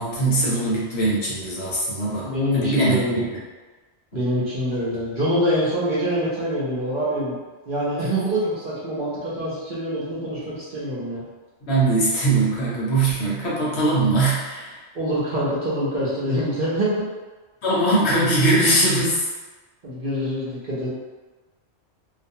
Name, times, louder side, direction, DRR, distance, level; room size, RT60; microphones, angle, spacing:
voice 1, 0.0-2.3 2.5-3.2 11.7-14.8 17.6-19.2, right 2 dB, 65° left, -6 dB, 0.9 m, -21 dB
voice 2, 2.2-3.3 4.1-7.4 7.7-11.2 14.9-17.1 19.8-20.9, equal, 50° right, -8 dB, 0.8 m, -25 dB
2.4 x 2.1 x 2.7 m, 1.3 s
omnidirectional pair, 1.3 m